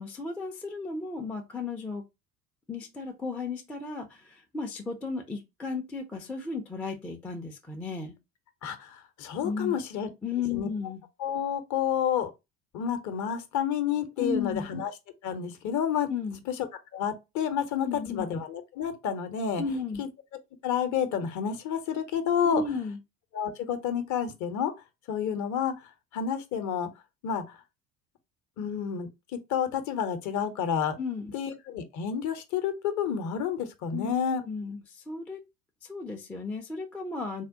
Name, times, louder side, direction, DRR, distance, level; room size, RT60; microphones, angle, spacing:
voice 1, 0.0-2.0 2.7-8.2 9.4-9.7 10.2-11.0 14.2-14.7 16.1-16.4 17.8-18.3 19.6-20.0 22.5-23.0 31.0-31.3 33.9-34.1 34.4-35.4 35.8-37.4, left 4 dB, 5° left, 0.3 m, -34 dB
voice 2, 8.6-10.1 10.5-10.7 11.2-12.3 12.7-14.9 15.2-16.1 16.9-19.6 20.0-20.1 20.6-22.6 23.3-24.7 25.1-25.8 26.1-26.9 27.2-27.6 28.6-31.0 31.3-34.4, left 8 dB, 40° left, 0.7 m, -29 dB
3.4 x 2.1 x 2.6 m
figure-of-eight pair, 60°, 46 cm